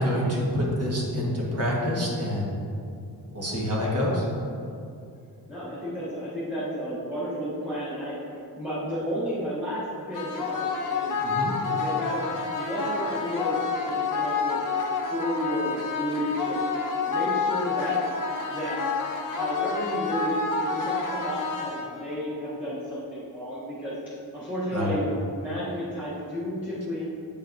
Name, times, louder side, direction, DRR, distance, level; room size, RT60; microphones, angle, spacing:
voice 1, 0.0-2.5 3.3-4.2 11.2-11.5 24.7-25.0, equal, 40° right, -4 dB, 1.4 m, -27 dB
voice 2, 5.5-8.1 8.5-11.1 11.7-14.6 15.1-16.7 17.1-18.0 18.5-18.8 19.3-23.9 24.3-27.0, equal, 5° right, -12 dB, 1.5 m, -32 dB
sound 1, 10.1-22.1, left 4 dB, 55° left, 0.8 m, -29 dB
8.5 x 5.9 x 2.6 m, 2.5 s
wide cardioid pair, 160°, 39 cm